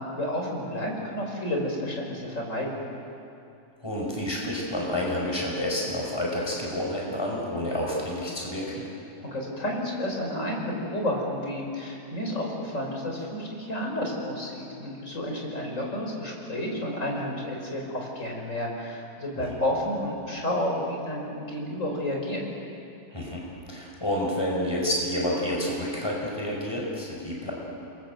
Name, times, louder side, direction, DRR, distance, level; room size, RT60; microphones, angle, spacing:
voice 1, 0.0-2.8 9.2-22.4, left 1 dB, 50° left, 0 dB, 5.5 m, -31 dB
voice 2, 3.8-8.9 19.4-19.5 23.1-23.4 23.7-27.5, left 1 dB, 15° left, -2 dB, 5.6 m, -29 dB
29.0 x 23.0 x 7.9 m, 2.7 s
omnidirectional pair, 1.7 m